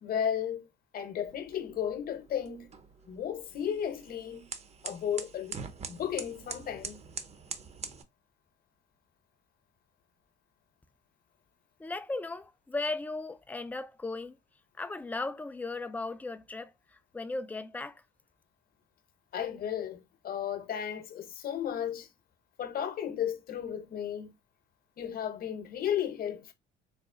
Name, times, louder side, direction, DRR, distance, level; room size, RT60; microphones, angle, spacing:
voice 1, 0.0-0.7 0.9-2.8 3.1-4.5 4.8-5.6 5.9-7.1 19.3-22.1 22.6-24.3 25.0-26.5, left 9 dB, 50° left, 0.9 m, -34 dB
sound 1, 1.2-8.0, right 5 dB, 35° right, 0.7 m, -44 dB
voice 2, 11.8-14.4 14.8-18.0, left 3 dB, 10° left, 0.4 m, -37 dB
4.1 x 2.0 x 3.6 m
supercardioid pair, 80°, 19 cm